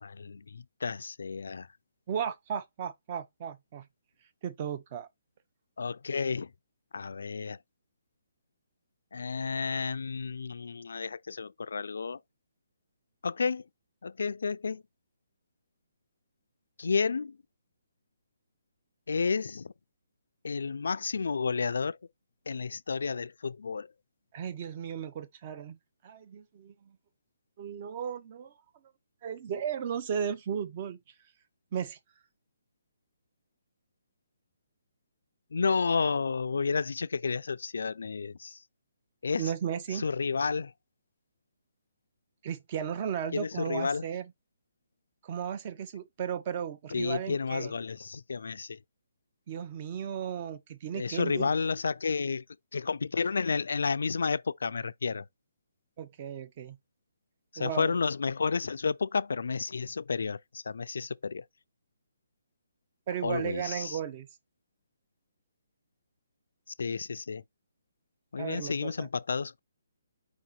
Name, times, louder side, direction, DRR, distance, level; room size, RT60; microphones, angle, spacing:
voice 1, 0.0-1.7 5.8-6.5 6.9-7.6 9.1-12.2 13.2-13.6 14.0-14.8 16.8-17.4 19.1-19.7 20.4-22.0 22.5-23.9 35.5-38.6 39.2-39.5 39.9-40.7 43.3-44.0 46.9-48.8 50.9-52.4 52.7-55.3 57.5-61.4 63.2-64.0 66.8-67.4 68.3-69.6, left 5 dB, 75° left, 0.4 m, -31 dB
voice 2, 2.1-3.8 4.4-5.1 24.3-25.8 26.0-27.0 27.6-28.5 29.2-31.0 31.7-32.0 39.4-40.0 42.4-44.2 45.2-47.7 49.5-51.5 56.0-56.8 57.6-58.0 63.1-64.3 68.4-69.1, right 8 dB, 30° right, 0.7 m, -35 dB
4.8 x 2.8 x 3.9 m
hypercardioid pair, 165°, 0 cm